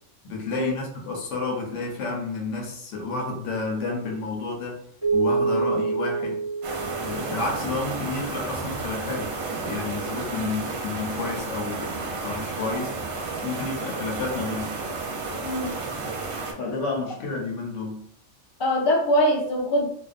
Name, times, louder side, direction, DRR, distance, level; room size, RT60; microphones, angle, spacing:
voice 1, 0.2-4.8 5.1-6.5 7.0-9.3 9.6-12.9 13.4-14.8 16.6-18.1, left 3 dB, 70° left, 0 dB, 1.0 m, -30 dB
Keyboard (musical), 5.0-8.0, right 4 dB, 30° right, 0.6 m, -27 dB
sound 1, 6.6-16.5, right 3 dB, 60° right, 0.8 m, -32 dB
voice 2, 15.4-15.8 18.6-19.9, equal, 45° left, -2 dB, 0.3 m, -23 dB
2.5 x 2.2 x 2.4 m, 0.67 s
omnidirectional pair, 1.3 m